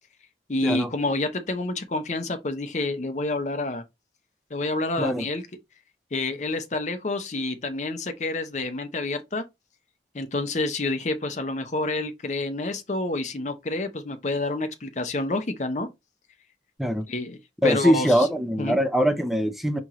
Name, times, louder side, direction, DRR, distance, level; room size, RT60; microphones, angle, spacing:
voice 1, 0.5-3.8 4.5-5.4 6.1-9.4 10.1-15.9 17.1-17.4 17.6-18.1 18.6-18.8, left 2 dB, 40° left, 0.7 m, -28 dB
voice 2, 17.6-19.8, equal, ahead, 0.5 m, -22 dB
4.4 x 3.0 x 3.6 m
head